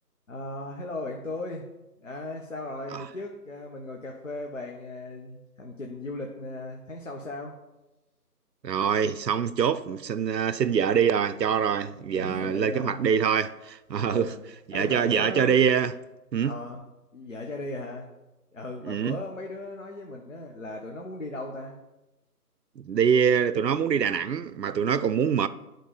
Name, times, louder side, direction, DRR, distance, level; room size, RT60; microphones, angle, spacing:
voice 1, 0.3-1.7 2.0-7.6 12.1-13.1 14.0-14.4 14.7-15.6 16.4-16.8 17.1-18.1 18.5-21.8, left 2 dB, 50° left, 0.9 m, -37 dB
voice 2, 8.6-14.3 14.7-15.9 16.3-16.5 18.8-19.2 22.8-25.5, right 7 dB, 90° right, 0.6 m, -24 dB
9.2 x 3.8 x 5.3 m
figure-of-eight pair, 170°, 48 cm